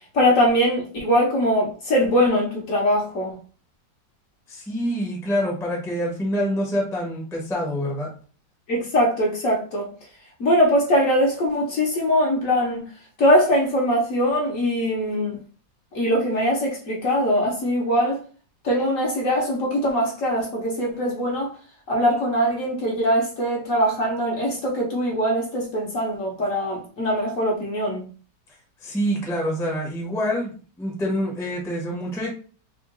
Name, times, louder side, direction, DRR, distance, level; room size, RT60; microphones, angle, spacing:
voice 1, 0.1-3.4 8.7-9.9 10.4-12.9 13.2-15.4 15.9-18.2 18.6-21.5 21.9-28.0, equal, 55° left, 1.2 m, -22 dB
voice 2, 4.5-8.1 28.8-32.3, equal, ahead, 0.7 m, -26 dB
3.6 x 2.3 x 3.7 m
omnidirectional pair, 1.9 m